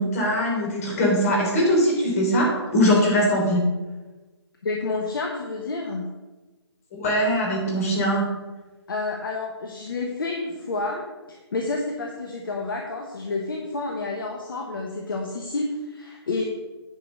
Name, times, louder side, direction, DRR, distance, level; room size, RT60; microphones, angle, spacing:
voice 1, 0.0-3.7 6.9-8.4, equal, 35° left, -1 dB, 3.2 m, -21 dB
voice 2, 4.6-6.1 8.9-16.4, left 3 dB, 50° left, 1 dB, 1.2 m, -29 dB
9.4 x 5.0 x 6.5 m, 1.2 s
figure-of-eight pair, 140°, 14 cm